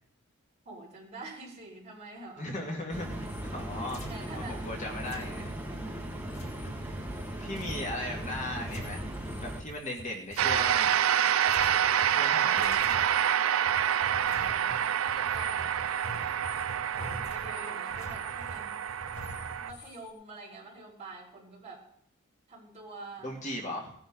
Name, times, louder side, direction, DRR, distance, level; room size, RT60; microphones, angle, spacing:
voice 1, 0.6-2.5 3.7-4.6 5.7-5.9 14.2-15.9 16.9-18.9 19.6-21.8 22.5-23.3, right 2 dB, 30° right, -3 dB, 4.9 m, -46 dB
voice 2, 2.4-4.0 4.3-5.6 7.3-11.0 12.0-13.0 23.2-23.9, left 1 dB, 35° left, 0 dB, 2.0 m, -38 dB
sound 1, 2.9-11.2 11.5-12.3 12.6-20.1, left 1 dB, 90° left, 4.7 m, -46 dB
sound 2, 2.9-9.6, right 1 dB, 10° right, 1.5 m, -38 dB
sound 3, 10.4-19.7, right 9 dB, 70° right, 0.4 m, -27 dB
18.5 x 10.5 x 3.8 m, 0.70 s
head